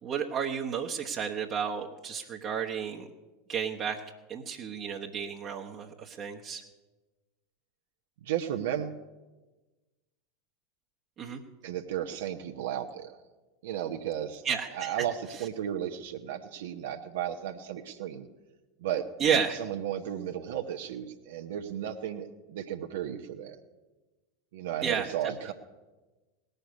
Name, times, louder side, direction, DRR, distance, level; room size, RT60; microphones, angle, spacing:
voice 1, 0.0-3.1 3.5-4.0 4.3-6.6 11.2-11.4 14.4-14.9 15.3-15.5 19.2-19.6 24.8-25.5, right 7 dB, 35° right, 0 dB, 1.1 m, -32 dB
voice 2, 8.2-9.0 11.6-13.2 13.6-14.4 14.7-18.3 18.8-19.0 19.6-23.6 24.5-25.5, right 10 dB, 65° right, 5 dB, 0.9 m, -34 dB
18.0 x 6.7 x 9.4 m, 1.2 s
figure-of-eight pair, 85°, 0 cm